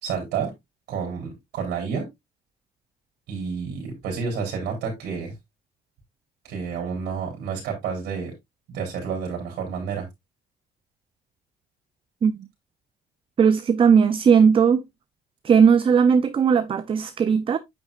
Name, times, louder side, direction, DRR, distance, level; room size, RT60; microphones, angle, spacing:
voice 1, 0.0-0.5 0.9-2.1 3.3-5.3 6.4-8.3 8.7-10.1, right 6 dB, 80° right, 3.7 m, -30 dB
voice 2, 13.4-14.8 15.4-17.6, right 6 dB, 30° right, 0.6 m, -17 dB
8.6 x 6.0 x 2.5 m
cardioid pair, 110°, 17 cm